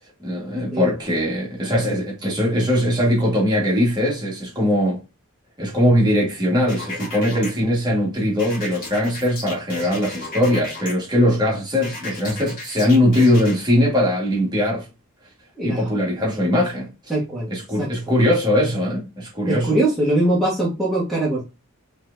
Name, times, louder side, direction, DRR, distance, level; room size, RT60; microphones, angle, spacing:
voice 1, 0.2-5.0 5.6-14.9 15.6-16.9 17.5-19.8, left 1 dB, 20° right, 1.5 m, -20 dB
sound 1, 6.7-7.5 8.4-10.9 11.8-13.5, left 2 dB, 40° left, 1.7 m, -34 dB
voice 2, 15.6-15.9 17.1-17.5 17.8-17.9 19.5-21.4, right 1 dB, ahead, 1.3 m, -21 dB
4.2 x 3.4 x 2.6 m
head